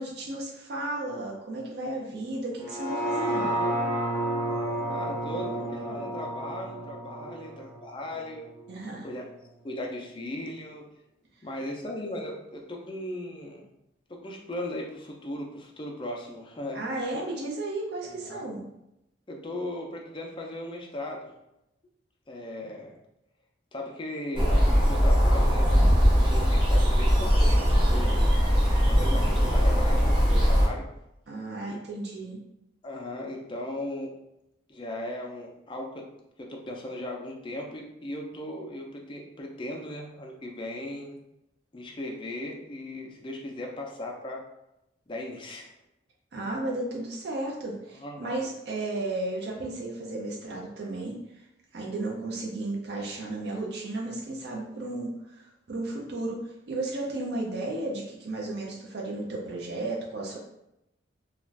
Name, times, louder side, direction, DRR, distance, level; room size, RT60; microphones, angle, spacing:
voice 1, 0.0-3.6 8.7-9.1 16.7-18.6 31.3-32.4 46.3-51.4 51.7-60.4, right 2 dB, 60° right, -2 dB, 0.5 m, -34 dB
sound 1, 2.6-8.8 9.2-9.3, right 1 dB, 5° left, 0.9 m, -31 dB
voice 2, 4.9-8.5 9.0-9.2 9.6-10.9 11.4-13.7 14.1-16.8 18.0-18.5 19.3-21.3 22.3-23.0 23.7-25.7 26.1-28.3 28.8-30.9 31.7-31.8 32.8-34.1 34.7-36.1 36.4-41.2 41.7-44.4 45.1-45.7 48.0-48.4, left 1 dB, 25° left, 0 dB, 0.4 m, -37 dB
sound 2, 24.3-30.7, equal, 25° right, 0.7 m, -21 dB
2.4 x 2.3 x 3.2 m, 0.86 s
head